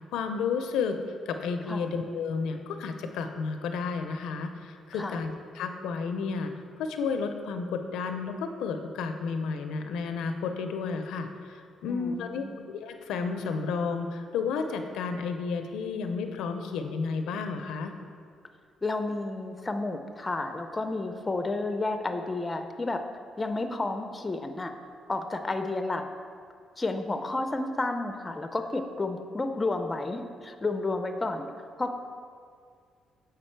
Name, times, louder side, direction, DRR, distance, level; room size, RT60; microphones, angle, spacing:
voice 1, 0.1-1.0 1.3-6.5 6.8-17.9, left 5 dB, 85° left, 7 dB, 0.5 m, -32 dB
voice 2, 11.9-12.6 18.8-23.0 23.4-24.7 25.1-26.0 26.8-31.4 31.8-31.9, left 2 dB, 20° left, 7 dB, 0.5 m, -31 dB
7.3 x 4.8 x 4.5 m, 2.2 s
cardioid pair, 90°, 0 cm